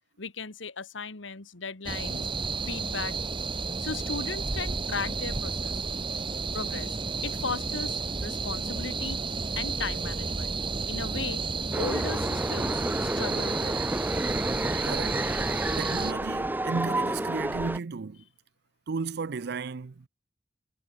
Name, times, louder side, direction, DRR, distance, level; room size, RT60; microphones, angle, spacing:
voice 1, 0.2-2.3 2.6-3.2 3.8-5.8 6.5-7.0 7.2-9.2 9.5-10.5 10.9-11.4 11.8-13.8, left 4 dB, 80° left, 1.6 m, -36 dB
sound 1, 1.8-16.1, right 4 dB, 25° right, 1.1 m, -32 dB
sound 2, 11.7-17.8, right 1 dB, 10° right, 0.7 m, -30 dB
voice 2, 14.8-15.4 15.8-18.2 18.9-20.1, right 4 dB, 60° right, 0.5 m, -34 dB
head